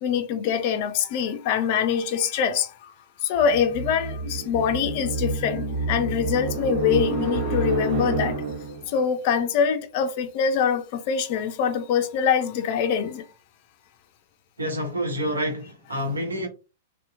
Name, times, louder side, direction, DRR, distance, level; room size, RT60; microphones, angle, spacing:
voice 1, 0.0-8.4 8.9-13.3, left 7 dB, 50° left, 0.4 m, -24 dB
sound 1, 3.4-8.9, right 3 dB, 50° right, 1.4 m, -28 dB
voice 2, 14.6-16.5, equal, 85° right, 0.9 m, -28 dB
2.7 x 2.1 x 2.4 m
figure-of-eight pair, 100°, 0 cm